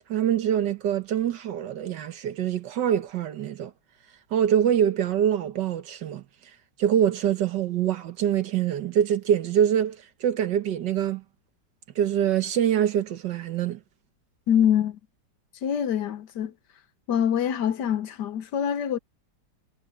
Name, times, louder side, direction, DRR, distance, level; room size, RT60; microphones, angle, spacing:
voice 1, 0.1-3.7 4.3-6.2 6.8-11.2 12.0-13.8, right 9 dB, 75° right, 1.8 m, -24 dB
voice 2, 14.5-15.0 15.6-16.5 17.1-19.0, left 9 dB, 70° left, 1.5 m, -24 dB
omnidirectional pair, 1.9 m